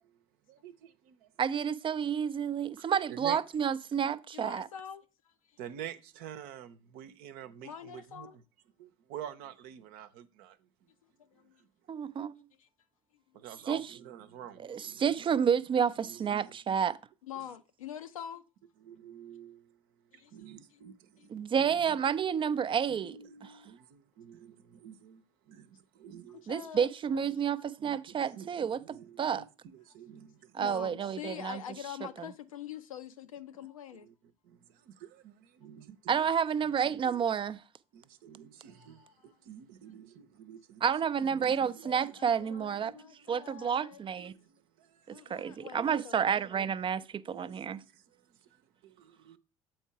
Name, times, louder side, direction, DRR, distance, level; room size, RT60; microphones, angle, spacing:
voice 1, 0.0-1.3 2.8-3.4 5.6-8.4 8.8-11.7 13.3-15.3 16.0-17.0 17.3-17.5 18.8-26.5 27.1-27.3 27.8-30.9 34.0-36.3 36.6-37.2 37.9-40.8 41.2-43.5 44.2-45.9 47.2-49.4, right 9 dB, 60° right, 0.8 m, -50 dB
voice 2, 1.4-4.7 11.9-12.4 13.7-13.8 14.7-17.0 21.3-23.1 26.5-28.8 29.2-29.4 30.5-31.6 32.2-32.3 36.1-37.6 40.8-42.9 43.3-44.3 45.1-47.8, right 7 dB, 30° right, 0.5 m, -30 dB
voice 3, 4.3-5.0 7.6-8.4 11.3-11.5 12.6-12.7 17.3-18.4 20.1-20.3 20.7-20.8 21.2-21.3 23.4-23.5 26.5-27.2 30.6-34.1 38.7-39.1 41.8-44.0 45.1-46.3, left 9 dB, 80° left, 0.6 m, -45 dB
7.9 x 4.5 x 4.6 m
figure-of-eight pair, 60°, 17 cm